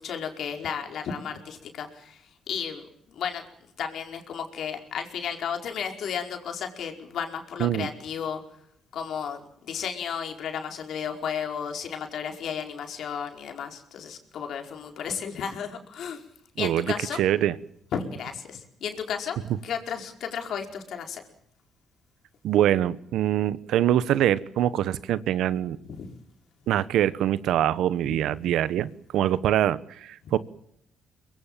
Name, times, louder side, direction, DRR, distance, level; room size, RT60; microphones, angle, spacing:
voice 1, 0.0-3.4 3.8-8.4 8.9-16.2 16.6-17.2 17.9-19.4 19.6-21.2 25.8-26.1 28.1-28.4 30.2-30.3, left 7 dB, 70° left, 4 dB, 4.8 m, -33 dB
voice 2, 16.6-17.5 22.4-25.8 26.7-30.4, right 11 dB, 80° right, 16 dB, 1.1 m, -24 dB
24.0 x 22.0 x 7.5 m, 0.75 s
cardioid pair, 90°, 0 cm